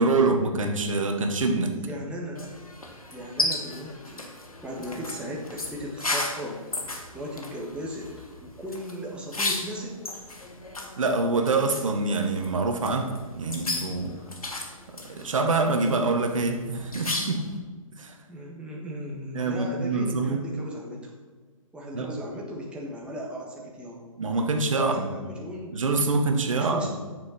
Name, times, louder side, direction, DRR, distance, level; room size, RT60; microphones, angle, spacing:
voice 1, 0.0-1.7 11.0-14.1 15.1-17.5 18.0-18.1 19.3-20.4 21.9-22.1 24.2-25.1 25.7-26.9, right 3 dB, 65° right, 4 dB, 1.5 m, -25 dB
voice 2, 1.7-2.6 3.1-4.3 4.6-6.6 7.1-8.1 8.4-10.0 18.3-21.1 21.7-24.0 24.8-25.7 26.5-26.9, equal, 5° right, -2 dB, 1.5 m, -37 dB
sound 1, 2.3-17.6, left 2 dB, 85° left, 1.7 m, -35 dB
9.3 x 6.8 x 5.8 m, 1.4 s
figure-of-eight pair, 130°, 18 cm